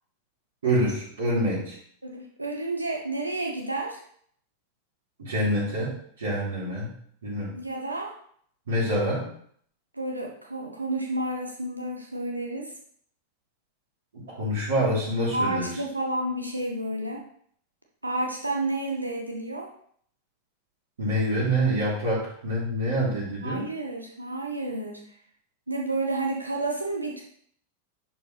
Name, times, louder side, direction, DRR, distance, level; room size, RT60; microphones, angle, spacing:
voice 1, 0.6-1.8 5.2-5.9 6.2-6.9 7.2-7.5 8.7-9.2 14.1-15.7 21.0-23.6, equal, 65° right, -10 dB, 3.6 m, -26 dB
voice 2, 2.0-4.0 7.5-8.1 9.9-12.7 15.3-17.2 18.0-19.7 23.4-25.0 25.7-27.2, right 2 dB, 85° right, 0 dB, 1.1 m, -30 dB
10.5 x 4.9 x 3.4 m, 0.63 s
figure-of-eight pair, 90°, 0 cm